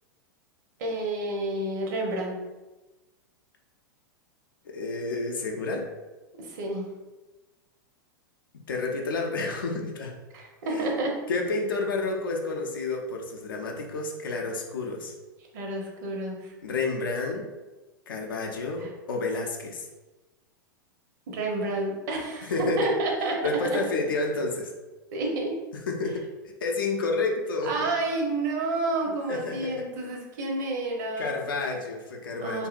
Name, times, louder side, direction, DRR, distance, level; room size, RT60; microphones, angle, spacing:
voice 1, 0.8-2.4 6.4-6.9 10.3-11.2 15.5-16.6 18.8-18.9 21.3-23.4 25.1-25.5 27.6-31.3 32.4-32.7, right 2 dB, 55° right, 0 dB, 0.8 m, -29 dB
voice 2, 4.6-5.9 8.7-10.1 10.7-10.9 11.3-15.1 16.6-17.5 18.1-19.9 22.4-22.9 23.4-24.7 25.9-27.9 29.0-29.9 31.2-32.7, left 3 dB, 75° left, 1 dB, 0.5 m, -30 dB
2.8 x 2.7 x 2.4 m, 1.1 s
hypercardioid pair, 100°, 11 cm